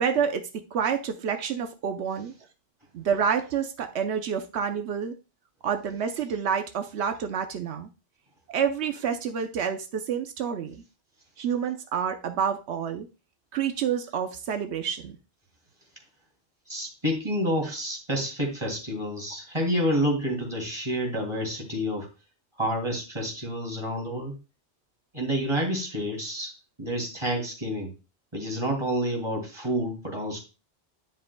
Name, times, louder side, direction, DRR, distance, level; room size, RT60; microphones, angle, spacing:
voice 1, 0.0-2.3 2.9-5.1 5.6-7.9 8.5-10.8 11.4-13.1 13.5-15.2, right 7 dB, 85° right, 6 dB, 1.0 m, -28 dB
voice 2, 16.7-22.1 22.6-24.3 25.1-27.9 28.3-30.4, equal, 25° right, 1 dB, 2.6 m, -29 dB
10.0 x 7.6 x 2.2 m, 0.29 s
omnidirectional pair, 1.1 m